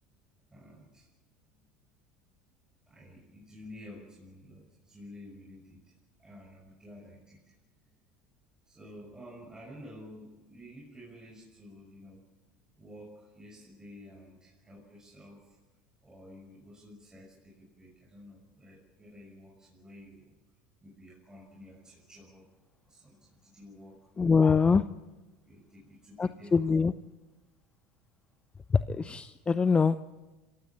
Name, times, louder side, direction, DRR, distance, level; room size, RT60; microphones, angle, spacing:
voice 1, 0.5-1.1 1.4-1.6 2.8-7.5 7.8-8.0 8.6-12.2 12.8-15.6 16.0-20.3 20.8-22.5 22.8-24.3 25.4-26.7, left 1 dB, 15° right, -3 dB, 6.5 m, -51 dB
voice 2, 24.2-24.8 26.2-26.9 28.7-30.0, left 5 dB, 20° left, 13 dB, 0.7 m, -24 dB
26.5 x 16.5 x 8.9 m, 1.2 s
hypercardioid pair, 80°, 5 cm